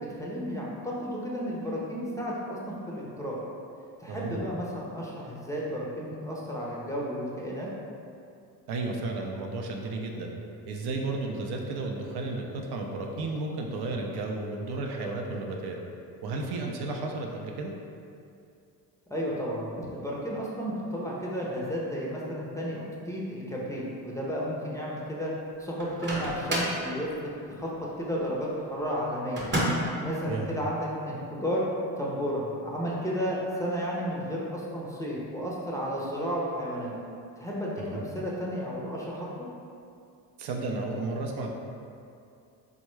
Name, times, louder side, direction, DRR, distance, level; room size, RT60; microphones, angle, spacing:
voice 1, 0.0-2.6 2.9-3.4 4.0-7.7 19.1-25.3 25.6-27.1 27.5-27.7 28.0-29.5 30.0-31.7 32.0-36.9 37.4-39.3, equal, 10° left, -5 dB, 0.5 m, -32 dB
voice 2, 4.1-4.5 8.7-10.3 10.7-15.8 16.2-17.7 30.3-30.6 37.8-38.0 40.4-41.5, right 3 dB, 65° right, 1 dB, 0.5 m, -33 dB
Microwave oven, 25.8-26.8 29.4-30.0, equal, 25° right, 0.8 m, -29 dB
3.5 x 2.1 x 3.1 m, 2.5 s
supercardioid pair, 70°, 42 cm